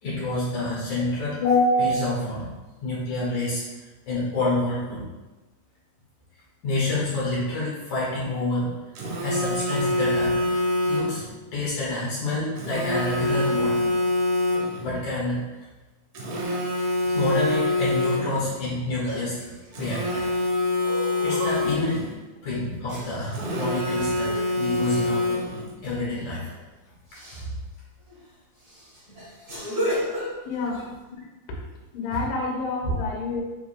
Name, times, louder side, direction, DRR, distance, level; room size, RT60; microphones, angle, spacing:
voice 1, 0.0-2.5 2.8-3.6 4.1-5.0 6.6-8.7 9.2-10.5 10.8-11.2 11.5-13.9 14.8-15.4 17.0-20.3 21.2-22.0 22.4-25.2 25.8-26.5 27.4-27.5 29.1-29.5 32.1-32.2 32.8-32.9, left 2 dB, 55° left, -8 dB, 2.3 m, -27 dB
Telephone, 8.9-11.3 12.6-14.9 16.1-18.5 19.7-22.1 23.3-25.7, left 2 dB, 80° right, 1.7 m, -25 dB
sound 1, 16.8-17.4 18.3-18.4 18.8-20.3 20.8-22.0 22.9-23.6 24.1-24.5 25.8-26.1 26.4-26.6 27.1-27.4 28.1-28.2 28.6-30.9, equal, 40° right, 1.4 m, -34 dB
voice 2, 30.5-30.9 31.9-33.4, left 3 dB, 90° left, -2 dB, 3.6 m, -29 dB
9.4 x 4.8 x 2.2 m, 1.2 s
omnidirectional pair, 5.3 m